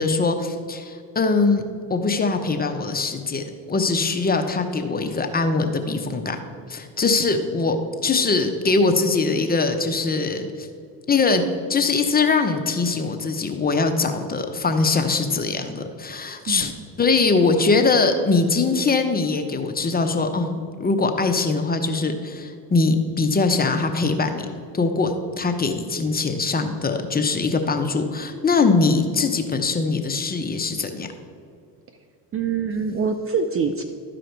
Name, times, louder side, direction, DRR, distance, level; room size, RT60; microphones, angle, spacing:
voice 1, 0.0-1.6 1.9-6.4 6.7-10.7 11.1-11.4 11.7-16.7 17.0-24.5 24.7-31.1, left 3 dB, 20° left, 6 dB, 0.8 m, -22 dB
voice 2, 16.5-16.9 32.3-33.8, right 5 dB, 30° right, 8 dB, 0.5 m, -25 dB
12.5 x 5.0 x 4.6 m, 2.3 s
supercardioid pair, 85°, 49 cm